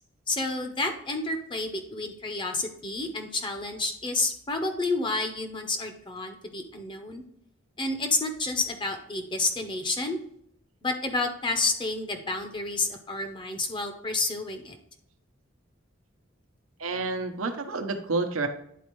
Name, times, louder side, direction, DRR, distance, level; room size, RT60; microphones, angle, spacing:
voice 1, 0.3-7.2 7.8-10.2 10.8-14.8, left 2 dB, 25° left, 5 dB, 0.8 m, -30 dB
voice 2, 16.8-18.5, right 3 dB, 85° right, 5 dB, 0.9 m, -29 dB
10.0 x 4.3 x 3.1 m, 0.69 s
head